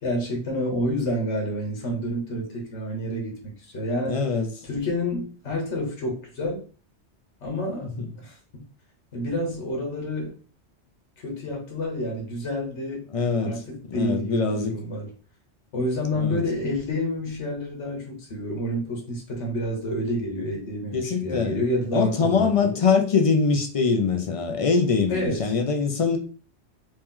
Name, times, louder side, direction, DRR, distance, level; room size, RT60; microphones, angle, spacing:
voice 1, 0.0-4.2 4.6-6.6 7.4-7.9 8.2-8.6 9.1-10.4 11.2-13.1 13.4-15.1 15.7-22.8 25.1-25.5, left 1 dB, 90° left, 1.4 m, -29 dB
voice 2, 4.1-4.5 7.8-8.1 13.1-13.6 13.9-14.8 16.2-16.4 20.9-21.6 21.9-26.2, left 5 dB, 45° left, 0.5 m, -23 dB
3.1 x 2.9 x 3.6 m
omnidirectional pair, 1.2 m